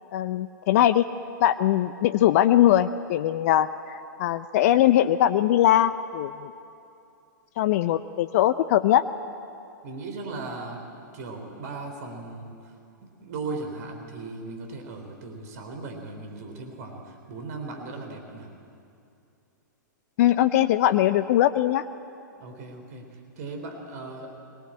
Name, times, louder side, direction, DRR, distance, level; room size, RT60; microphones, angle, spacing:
voice 1, 0.1-1.1 1.4-6.5 7.6-9.0 20.2-21.8, left 12 dB, 50° left, 11 dB, 0.6 m, -21 dB
voice 2, 9.8-12.7 13.0-18.5 22.4-24.4, right 3 dB, 55° right, 4 dB, 3.5 m, -38 dB
23.5 x 19.5 x 8.7 m, 2.5 s
hypercardioid pair, 110°, 10 cm